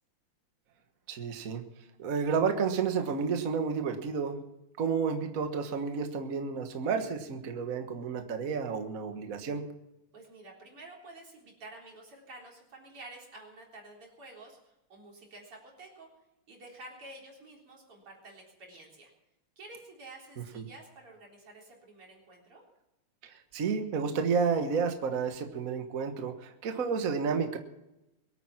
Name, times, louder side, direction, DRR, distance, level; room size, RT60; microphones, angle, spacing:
voice 1, 1.1-1.6 2.0-4.4 4.8-9.6 20.5-20.7 23.2-27.6, right 5 dB, 45° right, 5 dB, 1.6 m, -31 dB
voice 2, 10.1-16.1 16.5-19.1 19.6-22.6, right 2 dB, 90° right, -1 dB, 4.8 m, -50 dB
23.0 x 9.1 x 6.0 m, 0.92 s
omnidirectional pair, 2.4 m